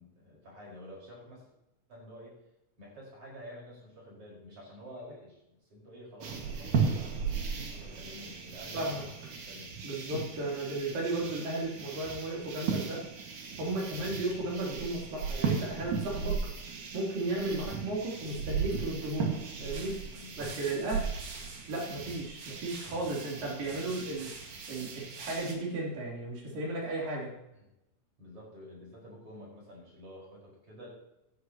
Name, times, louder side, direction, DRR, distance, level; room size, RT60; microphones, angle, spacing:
voice 1, 0.0-1.5 1.9-2.3 2.8-5.4 5.7-7.2 7.7-9.7 20.2-20.6 27.5-27.7 28.2-30.9, equal, 45° right, -4 dB, 6.0 m, -49 dB
sound 1, 6.2-25.5, right 5 dB, 70° right, 3.3 m, -36 dB
voice 2, 8.7-9.0 9.8-13.0 13.6-16.4 16.9-19.3 19.6-20.0 20.4-21.1 21.7-24.3 24.7-27.3, right 2 dB, 90° right, -4 dB, 5.2 m, -34 dB
17.0 x 11.0 x 3.0 m, 0.91 s
omnidirectional pair, 3.8 m